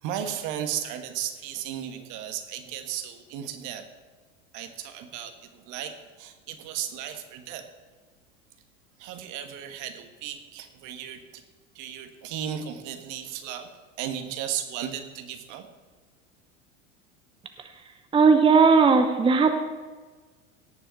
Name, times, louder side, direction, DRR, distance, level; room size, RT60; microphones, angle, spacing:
voice 1, 0.0-3.8 4.5-5.9 6.2-7.6 9.0-11.4 11.7-13.7 14.0-15.7, right 10 dB, 50° right, 7 dB, 1.5 m, -35 dB
voice 2, 18.1-19.6, right 5 dB, 15° right, 7 dB, 0.8 m, -17 dB
17.5 x 7.0 x 4.5 m, 1.4 s
hypercardioid pair, 85°, 38 cm